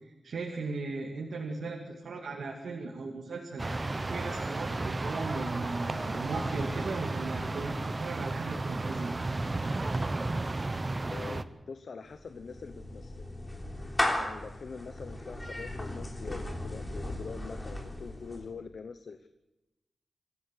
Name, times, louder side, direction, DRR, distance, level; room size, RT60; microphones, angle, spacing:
voice 1, 0.0-3.6 4.1-9.2 15.0-15.1, right 3 dB, 85° right, 1 dB, 2.4 m, -37 dB
sound 1, 3.6-11.4, right 2 dB, 25° right, 0.8 m, -33 dB
voice 2, 11.1-13.3 14.2-19.3, left 5 dB, 60° left, 9 dB, 0.9 m, -44 dB
Clapping / Meow, 12.1-18.5, left 1 dB, 15° left, 3.4 m, -36 dB
25.5 x 14.5 x 8.3 m, 1.0 s
wide cardioid pair, 165°, 0 cm